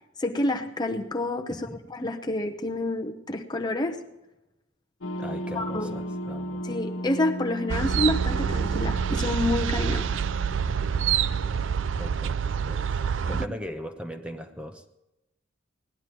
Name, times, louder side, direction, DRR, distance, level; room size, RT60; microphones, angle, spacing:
voice 1, 0.2-4.0 5.5-6.0 6.6-10.2, left 1 dB, 20° left, 4 dB, 0.9 m, -28 dB
voice 2, 1.5-1.8 5.2-6.6 12.0-12.4 12.6-13.0 13.3-15.0, equal, 5° right, 6 dB, 0.9 m, -39 dB
sound 1, 5.0-12.5, equal, 85° left, 1.2 m, -36 dB
sound 2, 7.7-13.5, right 7 dB, 70° right, 0.4 m, -26 dB
18.5 x 11.0 x 4.6 m, 0.97 s
head